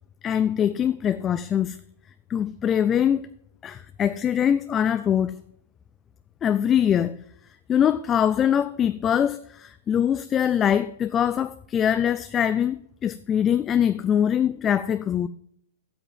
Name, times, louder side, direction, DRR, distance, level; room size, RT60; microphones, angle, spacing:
voice 1, 0.2-1.8 2.3-3.3 3.6-5.4 6.4-7.2 7.7-15.3, left 9 dB, 25° left, 0.3 m, -23 dB
8.0 x 7.0 x 7.2 m
hypercardioid pair, 135°, 0 cm